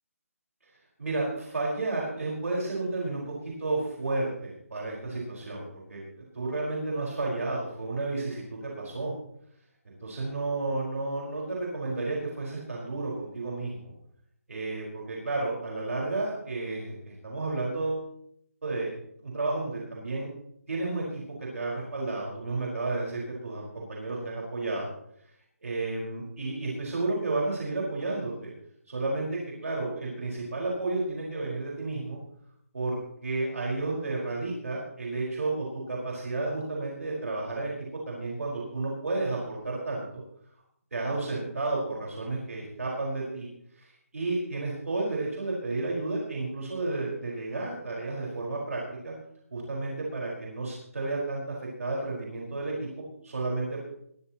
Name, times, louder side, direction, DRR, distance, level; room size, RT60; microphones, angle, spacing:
voice 1, 1.0-6.0 6.3-9.1 9.8-13.9 14.5-18.1 18.6-18.9 19.2-20.3 20.7-21.2 21.5-24.9 25.6-28.5 28.9-32.2 32.7-37.7 38.1-40.1 40.9-43.5 43.7-43.9 44.1-49.1 49.5-53.8, right 2 dB, 70° right, -3 dB, 5.0 m, -32 dB
22.0 x 12.5 x 3.0 m, 0.71 s
hypercardioid pair, 175°, 8 cm